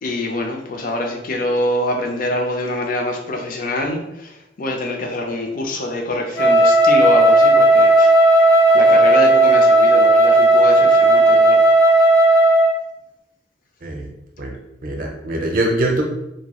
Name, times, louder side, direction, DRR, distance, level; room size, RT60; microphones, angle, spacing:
voice 1, 0.0-11.7, left 1 dB, 50° left, 2 dB, 0.5 m, -25 dB
Wind instrument woodwind instrument, 6.3-12.8, right 1 dB, 85° left, 0.7 m, -13 dB
voice 2, 13.8-14.1 14.4-16.0, right 1 dB, 50° right, 1 dB, 0.6 m, -23 dB
2.8 x 2.2 x 2.9 m, 0.88 s
head